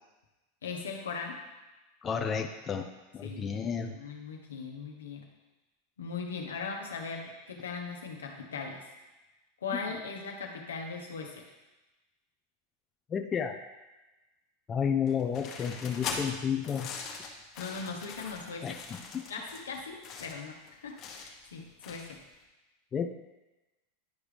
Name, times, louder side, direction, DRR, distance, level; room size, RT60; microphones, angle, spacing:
voice 1, 0.6-1.4 3.2-3.6 3.8-5.3 6.0-8.9 9.6-11.5 17.6-18.8 19.3-22.2, left 5 dB, 85° left, 1 dB, 1.2 m, -39 dB
voice 2, 2.0-3.9 13.1-13.5 14.7-16.9 18.6-19.2 22.9-23.1, left 7 dB, 30° left, 4 dB, 0.6 m, -31 dB
sound 1, 15.1-22.3, left 5 dB, 45° left, 1.3 m, -42 dB
10.5 x 4.8 x 3.4 m, 1.1 s
hypercardioid pair, 100°, 0 cm